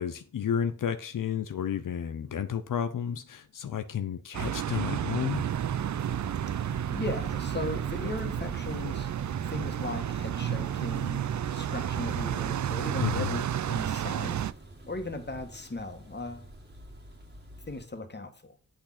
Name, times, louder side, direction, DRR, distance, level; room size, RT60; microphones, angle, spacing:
voice 1, 0.0-5.4 13.0-13.3, left 8 dB, 85° left, 0.7 m, -31 dB
sound 1, 4.3-14.5, right 10 dB, 65° right, 0.5 m, -31 dB
sound 2, 5.3-17.9, right 1 dB, 35° right, 1.9 m, -46 dB
voice 2, 6.6-9.1 9.4-11.3 11.5-14.4 14.9-16.5 17.7-18.6, left 2 dB, 35° left, 1.8 m, -38 dB
8.5 x 6.5 x 5.8 m
wide cardioid pair, 95°, 31 cm